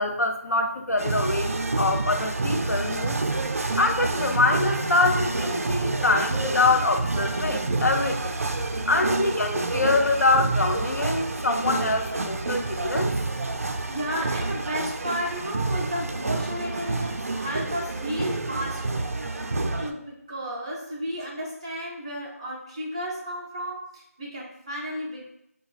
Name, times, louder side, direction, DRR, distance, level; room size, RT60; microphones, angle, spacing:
voice 1, 0.0-3.2 3.8-8.4 8.9-13.1, left 3 dB, 85° left, 5 dB, 0.6 m, -24 dB
sound 1, 1.0-19.9, right 3 dB, 60° right, 0.4 m, -28 dB
voice 2, 13.9-19.2 19.8-25.2, equal, 20° right, -4 dB, 0.6 m, -33 dB
4.7 x 2.2 x 2.4 m, 0.77 s
figure-of-eight pair, 170°, 9 cm